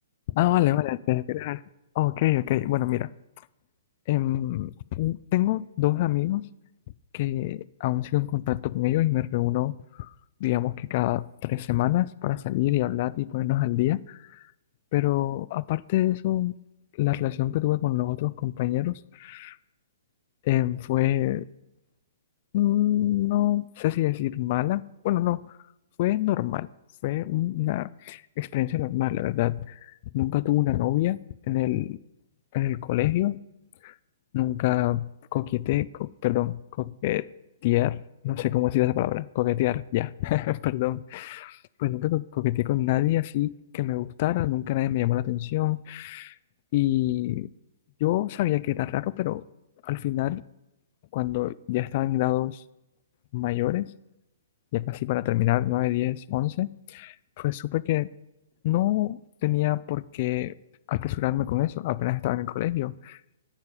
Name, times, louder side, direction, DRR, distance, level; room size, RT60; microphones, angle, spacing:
voice 1, 0.3-1.6 2.0-3.1 4.1-6.5 7.1-10.1 10.4-14.4 14.9-16.5 17.0-19.6 20.4-21.5 22.5-25.4 26.0-26.7 27.0-29.7 30.1-31.2 31.5-32.0 32.5-33.4 33.8-33.9 34.3-37.3 37.6-46.3 46.7-47.5 48.0-49.4 49.8-50.4 51.1-52.6 53.3-53.9 54.7-58.1 58.6-60.5 60.9-63.2, left 16 dB, 45° left, 0.3 m, -26 dB
9.0 x 5.4 x 6.7 m
hypercardioid pair, 140°, 0 cm